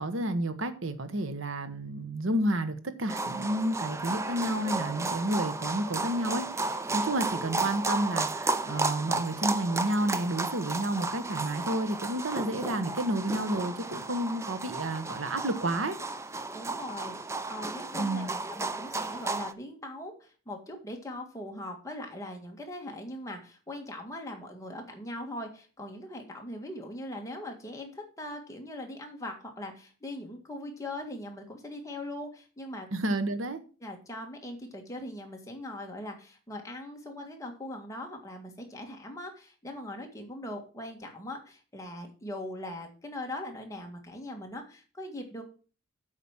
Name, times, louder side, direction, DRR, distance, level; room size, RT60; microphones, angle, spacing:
voice 1, 0.0-16.0 18.0-18.3 32.9-33.6, right 1 dB, 70° right, 1.0 m, -30 dB
sound 1, 3.1-19.5, right 3 dB, 15° right, 0.4 m, -33 dB
voice 2, 16.5-17.1 17.5-32.9 33.8-45.4, left 1 dB, 15° left, 1.7 m, -40 dB
8.3 x 5.0 x 7.2 m
head